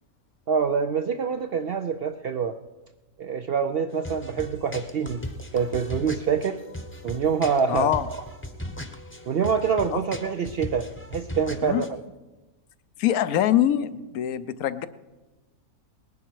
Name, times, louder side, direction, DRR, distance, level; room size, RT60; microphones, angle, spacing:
voice 1, 0.5-2.6 3.2-5.2 5.5-6.6 7.0-8.3 9.3-11.9, right 6 dB, 65° right, 8 dB, 0.6 m, -26 dB
sound 1, 3.9-11.9, left 1 dB, 10° left, 0.8 m, -38 dB
voice 2, 7.7-8.1 9.9-10.0 11.6-11.8 13.0-14.9, left 11 dB, 80° left, 13 dB, 1.1 m, -23 dB
19.5 x 11.0 x 4.6 m, 1.1 s
omnidirectional pair, 1.5 m